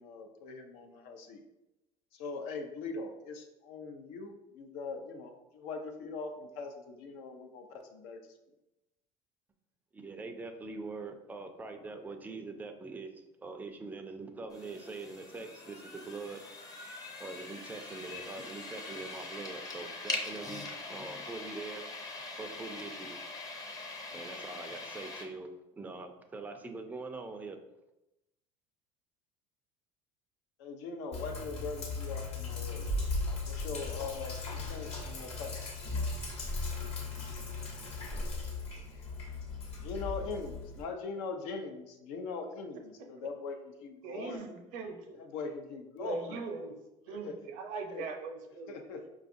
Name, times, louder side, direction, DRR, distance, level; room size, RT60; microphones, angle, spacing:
voice 1, 0.0-1.4 2.1-8.2 30.6-33.1 33.4-35.6 39.8-44.4 45.1-46.4 47.1-47.4 47.9-48.0 48.7-49.1, left 4 dB, 75° left, 4 dB, 0.6 m, -41 dB
voice 2, 9.9-13.1 13.4-16.4 17.2-21.8 22.4-23.2 24.1-25.5 25.7-27.6, right 3 dB, 10° right, 6 dB, 0.4 m, -43 dB
sound 1, 14.5-25.2, left 3 dB, 25° left, 0.7 m, -42 dB
Sink (filling or washing), 31.1-40.8, left 3 dB, 45° left, 1.0 m, -37 dB
voice 3, 44.0-45.2 46.0-46.7 47.1-48.8, right 4 dB, 65° right, 5 dB, 0.6 m, -40 dB
4.8 x 2.3 x 2.6 m, 0.93 s
supercardioid pair, 90°, 15 cm